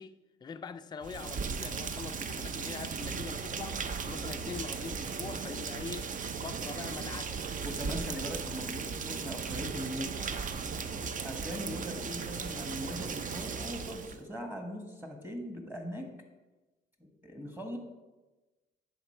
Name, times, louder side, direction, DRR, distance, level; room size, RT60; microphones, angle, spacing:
voice 1, 0.0-3.8 4.1-6.1 6.4-7.4, left 6 dB, 20° left, 0.3 m, -43 dB
Rain, 1.0-14.2, right 5 dB, 40° right, 0.5 m, -37 dB
voice 2, 7.6-10.1 11.2-16.1 17.2-17.8, equal, 10° right, 1.3 m, -40 dB
10.0 x 3.8 x 4.4 m
cardioid pair, 90°, 20 cm